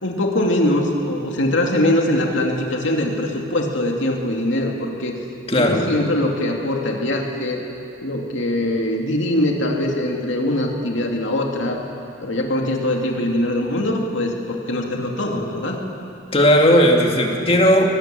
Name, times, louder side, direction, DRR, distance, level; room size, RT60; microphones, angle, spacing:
voice 1, 0.0-5.2 5.5-7.6 8.0-11.8 12.2-15.8, left 1 dB, 75° left, 1 dB, 2.4 m, -22 dB
voice 2, 5.5-5.9 16.3-17.9, equal, 30° left, 1 dB, 2.2 m, -15 dB
23.5 x 18.0 x 7.6 m, 2.6 s
head